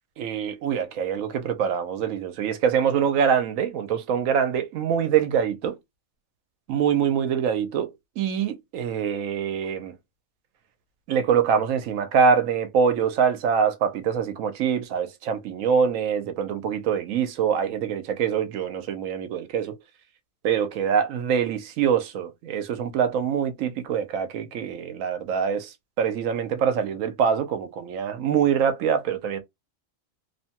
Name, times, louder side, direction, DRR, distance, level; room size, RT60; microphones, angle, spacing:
voice 1, 0.2-5.8 6.7-9.9 11.1-19.8 20.4-29.4, right 7 dB, 75° right, 1.0 m, -24 dB
2.9 x 2.2 x 2.8 m
omnidirectional pair, 1.4 m